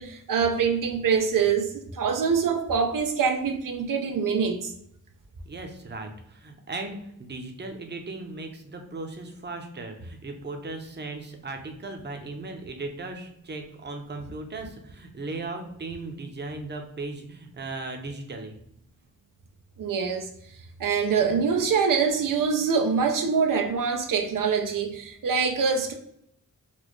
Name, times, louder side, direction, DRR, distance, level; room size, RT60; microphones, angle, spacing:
voice 1, 0.0-4.7 19.8-20.3 20.8-25.9, right 6 dB, 85° right, 4 dB, 0.5 m, -24 dB
voice 2, 5.4-18.6, right 3 dB, 35° right, 4 dB, 0.6 m, -37 dB
4.1 x 2.2 x 3.0 m, 0.73 s
wide cardioid pair, 85°, 32 cm